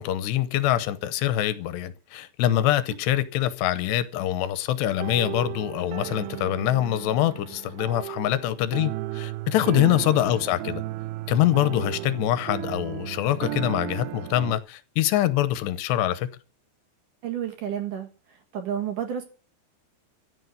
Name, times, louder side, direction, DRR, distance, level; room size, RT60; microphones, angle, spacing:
voice 1, 0.0-10.8 11.3-16.3, left 13 dB, 85° left, 3.0 m, -24 dB
sound 1, 4.8-14.6, right 16 dB, 80° right, 2.7 m, -35 dB
voice 2, 17.2-19.2, right 9 dB, 55° right, 2.9 m, -31 dB
15.5 x 6.5 x 9.4 m
omnidirectional pair, 4.9 m